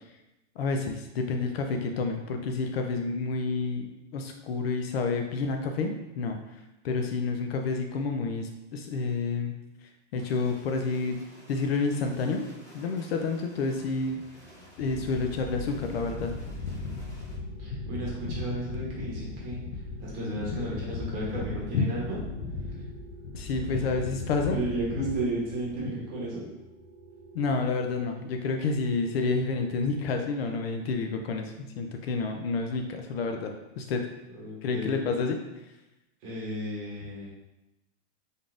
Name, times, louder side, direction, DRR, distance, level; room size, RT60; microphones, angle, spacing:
voice 1, 0.6-3.9 4.1-6.6 6.8-9.5 10.1-11.2 11.5-12.5 12.7-14.2 14.8-16.3 21.7-21.9 23.4-24.6 27.3-34.0 34.6-35.4, left 4 dB, 55° left, 4 dB, 0.5 m, -29 dB
sound 1, 10.2-17.3, equal, 10° left, 0.8 m, -53 dB
sound 2, 13.8-30.1, right 2 dB, 80° right, 1.2 m, -53 dB
sound 3, 14.8-25.9, left 3 dB, 85° left, 0.7 m, -37 dB
voice 2, 17.6-22.2 24.5-26.4 34.3-35.0 36.2-37.3, right 1 dB, 30° right, -5 dB, 1.0 m, -33 dB
4.0 x 3.5 x 2.5 m, 0.98 s
supercardioid pair, 170°, 37 cm